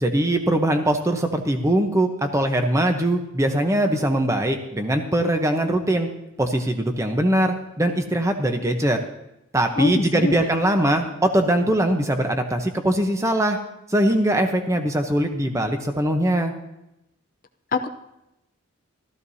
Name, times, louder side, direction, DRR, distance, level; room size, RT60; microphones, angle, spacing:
voice 1, 0.0-6.1 6.4-9.0 9.5-13.6 13.9-16.5, right 1 dB, 15° right, 6 dB, 0.9 m, -21 dB
voice 2, 9.8-10.5 17.7-17.9, left 3 dB, 40° left, 7 dB, 0.7 m, -24 dB
15.5 x 14.0 x 2.8 m, 0.88 s
head